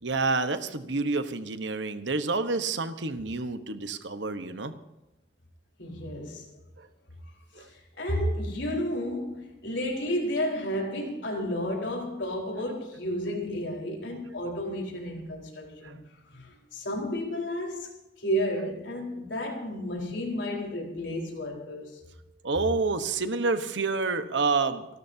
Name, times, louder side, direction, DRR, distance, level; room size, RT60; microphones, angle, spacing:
voice 1, 0.0-4.7 6.8-6.9 7.6-7.7 15.8-15.9 22.4-25.0, right 3 dB, 75° right, 1.2 m, -28 dB
voice 2, 5.8-6.5 7.5-16.0 16.3-22.0, equal, 75° left, 4.4 m, -32 dB
29.0 x 12.5 x 2.8 m
head